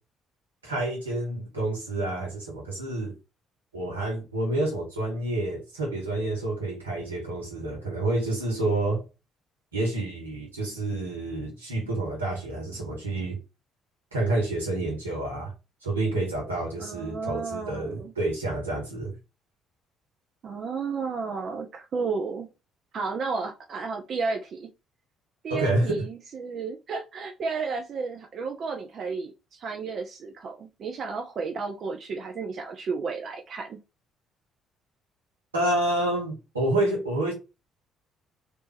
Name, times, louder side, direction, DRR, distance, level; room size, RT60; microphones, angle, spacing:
voice 1, 0.6-3.1 3.7-9.1 9.7-13.4 14.1-15.5 15.8-19.1 25.5-26.0 35.5-37.3, right 2 dB, 85° right, 1.1 m, -28 dB
voice 2, 16.8-18.1 20.4-22.5 22.9-24.7 25.4-33.8, right 4 dB, 45° right, 0.5 m, -32 dB
3.3 x 2.6 x 3.2 m
figure-of-eight pair, 45°, 0 cm